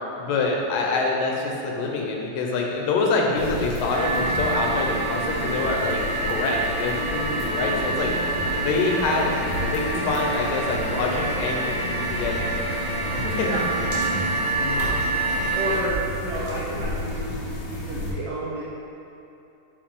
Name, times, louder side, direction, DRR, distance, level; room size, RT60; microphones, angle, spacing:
voice 1, 0.2-8.1 8.6-9.3 9.7-12.5 13.1-13.5 14.0-14.1 14.6-14.9, left 3 dB, 80° left, 0 dB, 2.4 m, -26 dB
sound 1, 3.4-18.1, left 1 dB, 60° left, 2.2 m, -33 dB
sound 2, 3.9-15.8, right 2 dB, 60° right, 1.0 m, -27 dB
voice 2, 15.6-18.6, right 1 dB, 85° right, -7 dB, 1.4 m, -31 dB
7.6 x 4.7 x 3.6 m, 2.9 s
omnidirectional pair, 3.8 m